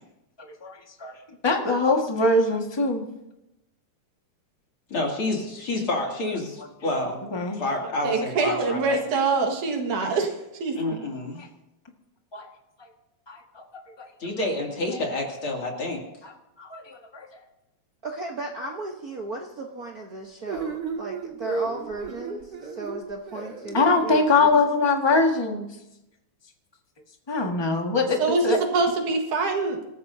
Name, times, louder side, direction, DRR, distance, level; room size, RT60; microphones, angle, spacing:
voice 1, 0.6-1.1 1.4-3.0 7.3-7.6 12.3-12.4 13.3-13.6 16.6-17.3 23.7-25.7 27.3-28.6, left 3 dB, 15° left, 1 dB, 0.8 m, -22 dB
voice 2, 4.9-7.2 7.6-9.0 10.7-11.4 14.2-16.0, left 2 dB, 45° left, -1 dB, 3.3 m, -28 dB
voice 3, 8.0-10.3 10.6-10.8 28.2-29.8, right 3 dB, 85° right, 2 dB, 3.2 m, -24 dB
voice 4, 18.0-24.7, right 2 dB, 65° right, 0 dB, 0.9 m, -35 dB
sound 1, 20.5-24.6, right 5 dB, 40° right, 2.0 m, -34 dB
26.5 x 14.0 x 2.8 m, 0.91 s
omnidirectional pair, 3.4 m